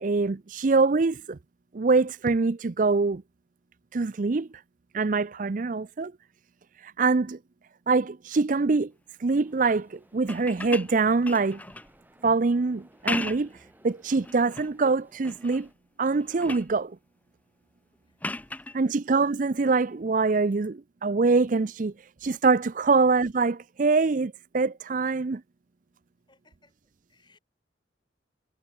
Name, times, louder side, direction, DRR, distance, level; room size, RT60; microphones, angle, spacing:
voice 1, 0.0-1.4 1.7-3.2 3.9-4.5 4.9-6.1 6.8-7.4 7.9-8.9 9.2-11.6 12.2-13.5 13.8-15.7 16.0-17.0 18.7-21.9 22.2-25.4, right 4 dB, 45° right, 0.5 m, -24 dB
sound 1, 9.4-15.7, right 1 dB, 10° right, 5.1 m, -59 dB
sound 2, 10.2-12.0 12.9-13.6 14.1-14.7 15.2-15.7 16.0-16.8 18.2-18.8 20.5-20.7, left 2 dB, 10° left, 0.5 m, -36 dB
voice 2, 18.6-19.0 26.3-26.7 27.1-27.4, left 3 dB, 25° left, 6.3 m, -63 dB
head